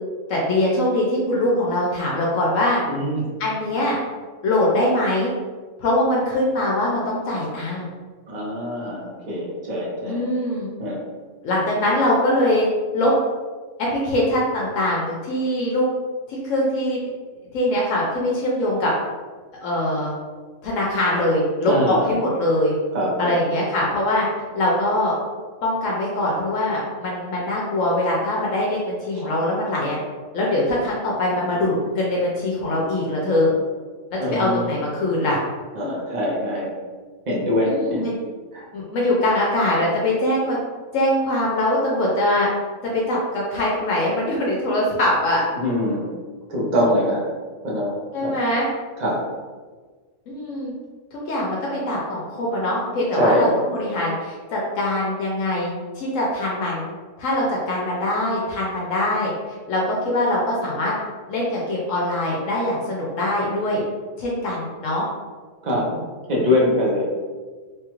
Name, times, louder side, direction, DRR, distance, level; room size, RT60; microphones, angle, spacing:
voice 1, 0.3-2.8 3.4-4.0 4.4-5.3 5.8-7.9 10.0-10.7 11.4-12.7 12.9-13.1 13.9-15.9 16.3-17.0 17.5-18.9 19.6-20.1 20.6-22.7 23.2-24.2 24.5-25.1 25.6-30.0 30.3-33.5 34.1-35.4 37.7-38.2 38.7-40.6 40.9-42.5 42.8-45.4 48.1-48.7 50.3-50.7 51.1-56.8 57.2-59.3 59.7-60.9 61.3-63.8 64.2-65.0, left 1 dB, 75° left, -4 dB, 1.0 m, -22 dB
voice 2, 2.9-3.3 8.3-10.2 10.8-11.0 21.6-22.1 22.9-23.4 34.2-34.8 35.7-36.7 37.3-38.0 38.5-38.6 45.5-46.1 46.5-47.3 47.6-48.3 49.0-49.2 53.1-53.6 65.6-66.0 66.3-67.1, left 1 dB, 40° right, -4 dB, 0.7 m, -23 dB
3.0 x 2.3 x 2.9 m, 1.4 s
omnidirectional pair, 1.4 m